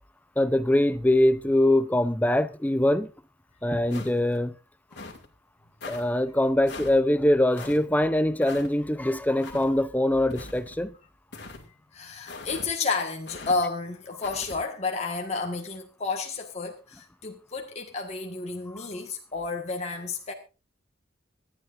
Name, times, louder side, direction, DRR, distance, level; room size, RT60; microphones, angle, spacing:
voice 1, 0.4-3.1 3.6-4.5 5.9-10.9, left 1 dB, 10° left, 0.6 m, -23 dB
sound 1, 3.9-4.4 4.9-5.3 5.8-6.0 6.7-7.0 7.6-7.8 8.4-8.7 9.4-9.7 10.3-10.8 11.3-11.6 12.3-12.7 13.3-13.6 14.2-14.6, left 3 dB, 60° left, 2.4 m, -41 dB
voice 2, 11.9-20.3, left 4 dB, 35° left, 1.6 m, -31 dB
26.0 x 9.4 x 2.6 m
head